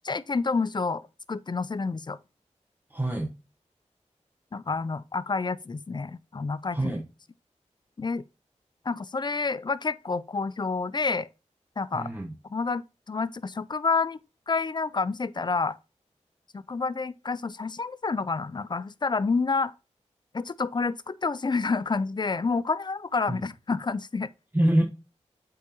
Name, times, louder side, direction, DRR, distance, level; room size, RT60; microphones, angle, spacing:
voice 1, 0.0-2.2 4.5-6.9 8.0-8.2 8.9-11.3 11.8-12.1 12.5-14.2 14.5-15.8 16.5-19.7 20.3-24.3, left 4 dB, 35° left, 0.4 m, -29 dB
voice 2, 2.9-3.3 6.7-7.0 11.9-12.3 23.3-23.4 24.5-24.8, right 1 dB, 15° right, 1.0 m, -25 dB
8.3 x 4.7 x 2.9 m
wide cardioid pair, 70°, 12 cm